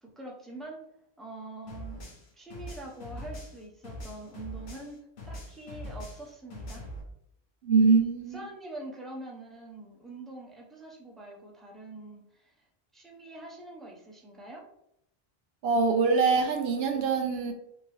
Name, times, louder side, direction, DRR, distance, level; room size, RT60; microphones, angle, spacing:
voice 1, 0.0-0.8 1.2-2.1 2.3-5.0 5.3-6.8 8.3-12.6 12.9-14.7, right 2 dB, ahead, -2 dB, 0.8 m, -44 dB
sound 1, 1.7-4.9 5.2-7.0, equal, 90° left, 1.3 m, -42 dB
voice 2, 7.6-8.4 15.6-17.5, right 4 dB, 80° right, 6 dB, 0.9 m, -24 dB
5.3 x 2.9 x 3.4 m, 0.75 s
omnidirectional pair, 1.0 m